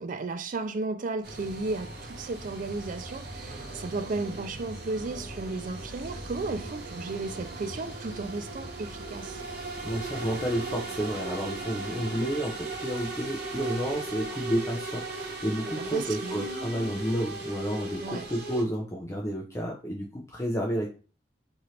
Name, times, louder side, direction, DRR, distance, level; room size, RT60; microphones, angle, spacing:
voice 1, 0.0-9.4 15.8-16.4 18.0-18.3, right 3 dB, 50° right, 0.4 m, -34 dB
sound 1, 1.2-18.6, right 2 dB, 65° right, 0.8 m, -37 dB
voice 2, 9.8-20.9, equal, 15° left, 0.5 m, -31 dB
2.8 x 2.5 x 3.1 m
head